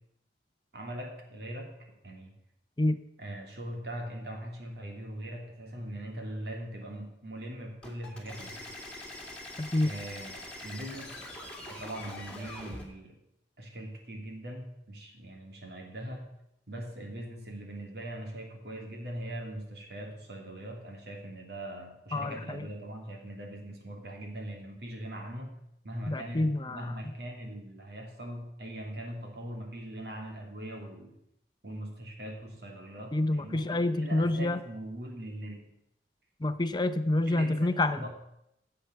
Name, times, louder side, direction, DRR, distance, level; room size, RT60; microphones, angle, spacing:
voice 1, 0.7-1.7 2.0-2.4 3.2-8.8 9.8-11.3 11.7-13.2 13.6-16.3 16.7-25.6 25.8-31.1 31.6-35.7 37.3-38.1, right 1 dB, 65° right, 1 dB, 3.0 m, -41 dB
sound 1, 7.8-12.9, left 1 dB, 5° left, 2.4 m, -44 dB
voice 2, 9.6-10.0 22.1-22.7 26.1-27.0 33.1-34.6 36.4-38.1, left 2 dB, 25° left, 11 dB, 0.7 m, -28 dB
14.0 x 7.9 x 6.9 m, 0.81 s
head